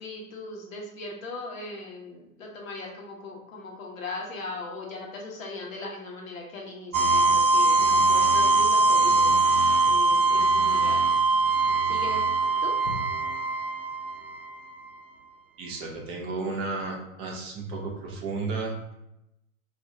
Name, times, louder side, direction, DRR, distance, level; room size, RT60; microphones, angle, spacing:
voice 1, 0.0-11.1 11.8-12.3 12.6-13.0, left 2 dB, 70° left, -1 dB, 1.0 m, -39 dB
sound 1, 6.9-14.7, right 3 dB, 75° right, 0.6 m, -22 dB
voice 2, 15.6-18.9, right 3 dB, 15° right, -1 dB, 0.3 m, -33 dB
2.6 x 2.4 x 4.2 m, 0.87 s
figure-of-eight pair, 100°, 41 cm